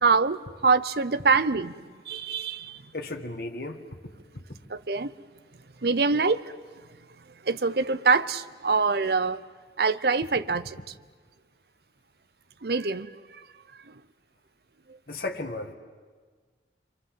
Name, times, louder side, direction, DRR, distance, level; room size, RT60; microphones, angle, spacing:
voice 1, 0.0-2.8 4.7-5.1 5.8-6.5 7.4-9.4 9.8-10.8 12.6-13.4 13.9-14.0 14.9-15.0, right 4 dB, 60° right, 0.7 m, -25 dB
voice 2, 2.9-3.8 15.1-15.7, left 2 dB, 55° left, 1.8 m, -34 dB
29.0 x 24.5 x 7.7 m
head